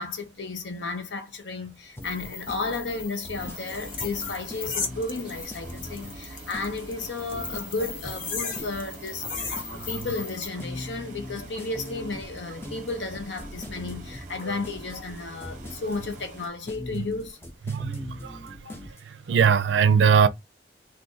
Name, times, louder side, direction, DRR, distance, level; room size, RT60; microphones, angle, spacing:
voice 1, 0.0-17.4 18.6-18.8, left 3 dB, 90° left, 0.8 m, -33 dB
sound 1, 2.0-10.5, left 5 dB, 50° left, 0.8 m, -37 dB
sound 2, 2.0-19.0, left 1 dB, 15° left, 0.5 m, -41 dB
sound 3, 3.4-16.5, right 3 dB, 45° right, 0.6 m, -46 dB
voice 2, 17.7-18.5 19.3-20.3, right 6 dB, 85° right, 0.4 m, -20 dB
2.5 x 2.5 x 3.8 m
head